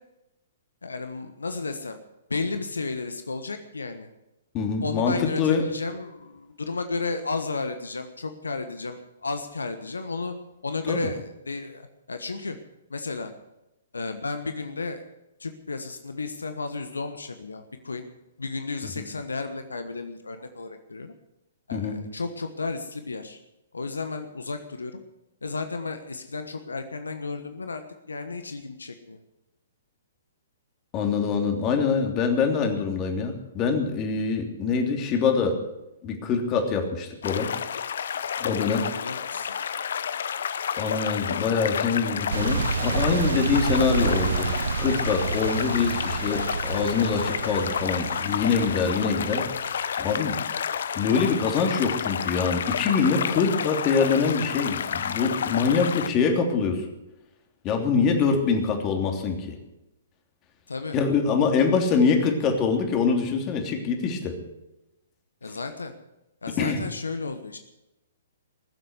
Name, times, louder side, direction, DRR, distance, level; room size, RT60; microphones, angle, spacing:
voice 1, 0.8-2.0 2.3-4.1 4.8-10.3 10.6-12.6 12.9-13.3 13.9-15.0 15.4-18.1 18.4-21.1 21.7-23.4 23.7-25.0 25.4-27.8 28.1-29.2 38.6-39.5 53.2-53.7 60.7-61.0 65.4-65.9 66.4-67.6, left 3 dB, 80° left, 8 dB, 1.3 m, -33 dB
voice 2, 4.5-5.6 10.9-11.0 21.7-22.0 30.9-35.6 36.0-37.5 38.4-38.9 40.8-44.5 44.8-49.5 50.0-50.4 50.9-56.8 57.6-59.6 60.9-64.4 66.6-66.8, left 5 dB, 30° left, 4 dB, 3.1 m, -24 dB
sound 1, 37.2-56.1, left 8 dB, 60° left, 0.8 m, -30 dB
sound 2, 42.3-49.9, right 6 dB, 70° right, 0.5 m, -29 dB
20.5 x 7.9 x 8.1 m, 0.93 s
figure-of-eight pair, 120°, 0 cm